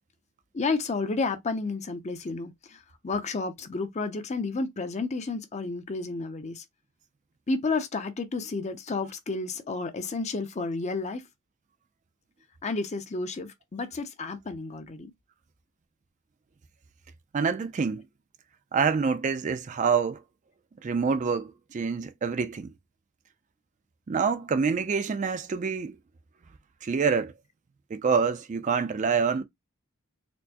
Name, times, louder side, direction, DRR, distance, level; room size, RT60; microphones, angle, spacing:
voice 1, 0.5-6.6 7.5-11.2 12.6-15.1, left 3 dB, 30° left, 0.5 m, -31 dB
voice 2, 17.3-18.0 18.7-20.2 20.8-22.7 24.1-26.0 26.8-27.3 27.9-29.4, right 5 dB, 35° right, 0.3 m, -26 dB
4.3 x 2.0 x 2.7 m
head